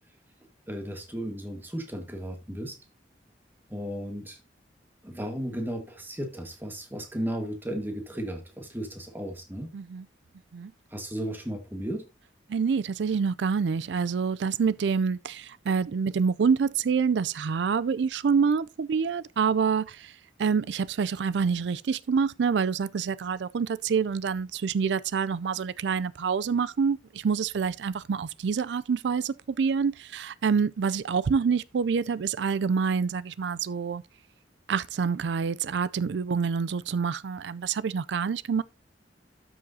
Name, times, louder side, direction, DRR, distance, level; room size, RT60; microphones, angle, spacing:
voice 1, 0.7-2.8 3.7-4.4 5.0-9.7 10.9-12.1, equal, 10° right, 1.6 m, -35 dB
voice 2, 9.7-10.0 10.5-10.7 12.5-20.1 20.4-34.0 34.7-38.6, right 6 dB, 75° right, 0.4 m, -27 dB
12.5 x 6.2 x 2.7 m
head